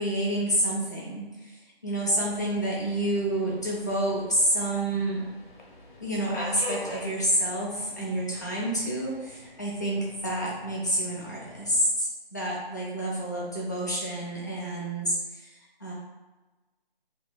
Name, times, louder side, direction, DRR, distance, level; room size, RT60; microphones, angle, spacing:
voice 1, 0.0-5.2 6.0-15.5 15.8-15.9, right 1 dB, 20° left, -6 dB, 0.6 m, -28 dB
Subway metro underground, 2.0-11.9, left 2 dB, 55° left, 0.9 m, -45 dB
2.9 x 2.6 x 3.7 m, 1.2 s
figure-of-eight pair, 165°, 30 cm